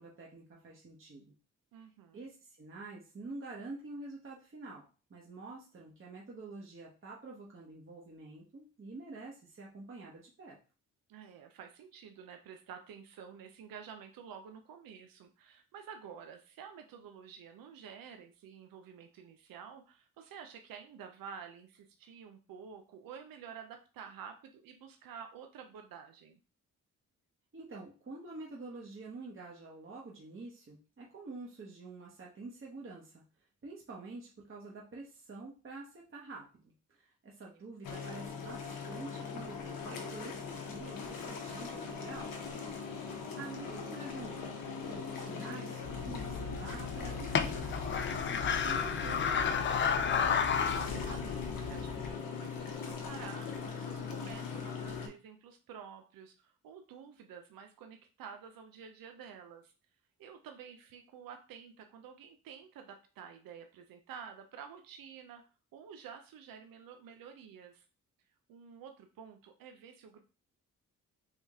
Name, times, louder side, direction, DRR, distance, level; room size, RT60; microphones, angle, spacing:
voice 1, 0.0-1.3 2.1-4.8 5.1-10.6 27.5-33.2 33.6-42.5 42.8-43.0 43.3-50.1, right 3 dB, 35° right, -3 dB, 1.0 m, -48 dB
voice 2, 1.7-2.2 11.1-26.4 50.8-59.7 60.2-65.4 65.7-67.8 68.5-70.2, right 7 dB, 80° right, 5 dB, 0.6 m, -50 dB
sound 1, 37.8-55.1, left 5 dB, 80° left, 0.9 m, -40 dB
sound 2, 45.8-52.1, left 6 dB, 35° left, 0.4 m, -33 dB
3.6 x 2.7 x 3.5 m, 0.34 s
cardioid pair, 65°, 34 cm